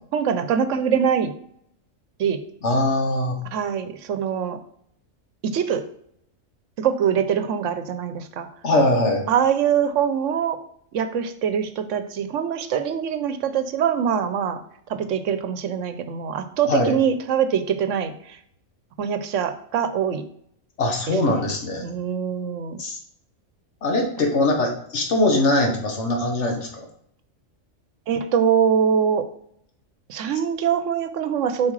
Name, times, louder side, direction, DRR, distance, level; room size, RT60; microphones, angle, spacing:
voice 1, 0.1-1.3 2.2-2.4 3.5-4.6 5.4-5.8 6.8-8.5 9.3-10.6 10.9-14.6 14.9-18.4 19.0-20.3 21.1-21.4 21.8-22.8 28.1-29.3 30.1-31.7, right 7 dB, 75° right, 10 dB, 1.0 m, -23 dB
voice 2, 2.6-3.4 8.6-9.2 16.6-16.9 20.8-21.9 22.8-23.0 23.8-26.9, left 1 dB, 65° left, 2 dB, 1.5 m, -21 dB
7.2 x 4.8 x 3.2 m, 0.68 s
omnidirectional pair, 1.3 m